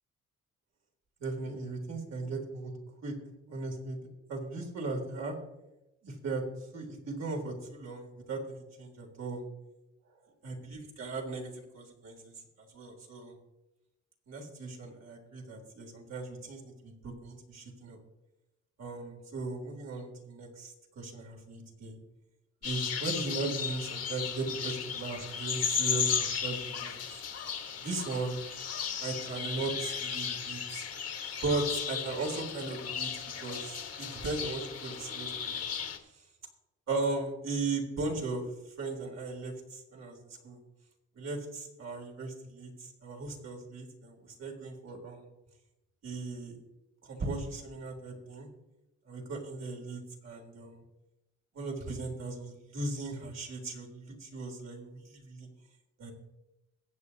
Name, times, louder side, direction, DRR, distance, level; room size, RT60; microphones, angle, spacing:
voice 1, 1.2-2.7 3.0-3.1 3.5-4.0 4.3-5.4 6.0-6.4 6.7-9.4 10.4-13.3 14.3-18.0 18.8-22.0 22.6-27.0 27.8-28.4 29.0-30.8 31.4-33.1 33.4-35.7 36.1-36.2 36.9-38.4 38.8-40.2 40.4-40.6 41.1-45.3 46.0-46.6 47.0-48.5 49.1-50.8 51.5-55.5 56.0-56.1, right 3 dB, 60° right, 0 dB, 3.5 m, -37 dB
sound 1, 22.6-36.0, left 7 dB, 55° left, 1.6 m, -35 dB
22.5 x 8.0 x 2.9 m, 0.94 s
cardioid pair, 90°, 30 cm